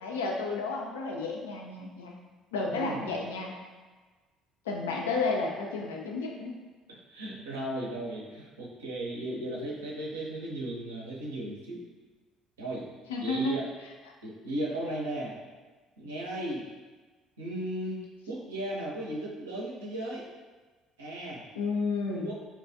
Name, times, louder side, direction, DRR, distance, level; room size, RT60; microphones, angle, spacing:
voice 1, 0.0-2.1 2.5-3.5 4.7-6.5 13.1-13.5 21.5-22.3, left 3 dB, 85° left, 0 dB, 0.4 m, -32 dB
voice 2, 2.7-3.1 7.1-11.8 12.6-12.9 13.2-13.7 14.2-15.4 16.0-16.7 17.4-18.0 18.3-20.3 21.0-21.4 22.1-22.3, right 1 dB, 90° right, -5 dB, 0.6 m, -36 dB
4.3 x 2.3 x 2.6 m, 1.3 s
hypercardioid pair, 55°, 0 cm